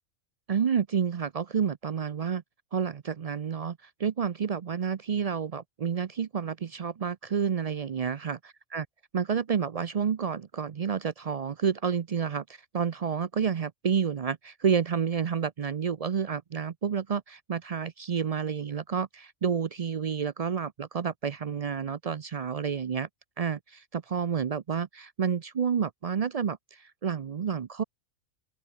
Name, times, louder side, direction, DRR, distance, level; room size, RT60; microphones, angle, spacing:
voice 1, 0.5-2.4 2.7-8.4 8.7-8.8 9.1-12.4 12.7-23.1 23.4-27.8, right 7 dB, 55° right, 0.4 m, -29 dB
open air
omnidirectional pair, 1.3 m